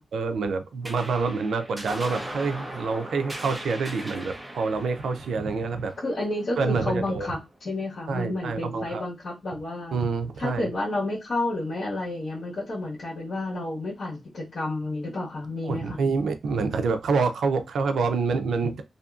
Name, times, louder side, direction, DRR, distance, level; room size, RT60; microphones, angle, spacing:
voice 1, 0.1-5.9 6.6-7.3 8.1-9.0 9.9-10.7 15.6-18.8, right 4 dB, 90° right, 0.4 m, -27 dB
sound 1, 0.8-7.6, right 1 dB, 10° right, 0.8 m, -39 dB
voice 2, 6.0-10.0 10.4-16.0, left 2 dB, 55° left, 1.3 m, -30 dB
2.7 x 2.5 x 2.4 m
wide cardioid pair, 140°, 0 cm